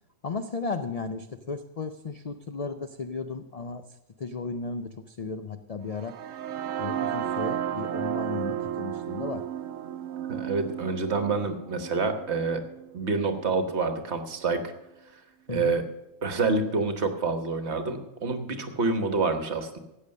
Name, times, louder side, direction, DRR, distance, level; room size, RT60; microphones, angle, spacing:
voice 1, 0.2-6.2 6.8-9.5 15.5-15.7, left 4 dB, 60° left, 8 dB, 0.4 m, -35 dB
sound 1, 6.0-13.9, right 10 dB, 75° right, 1.0 m, -33 dB
voice 2, 10.3-12.6 12.9-14.7 15.5-15.8 16.2-19.8, right 4 dB, 55° right, 7 dB, 1.4 m, -27 dB
13.5 x 8.7 x 6.4 m, 0.92 s
omnidirectional pair, 1.4 m